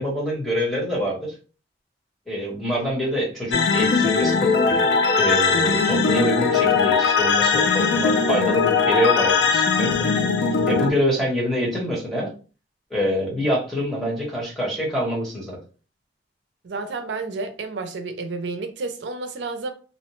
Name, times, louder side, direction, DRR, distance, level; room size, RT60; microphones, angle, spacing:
voice 1, 0.0-1.3 2.3-4.9 5.2-10.1 10.6-12.3 12.9-15.6, equal, ahead, 1.0 m, -25 dB
sound 1, 3.5-10.9, left 5 dB, 75° left, 0.4 m, -20 dB
voice 2, 16.6-19.7, right 3 dB, 80° right, 0.4 m, -30 dB
2.7 x 2.1 x 3.0 m
head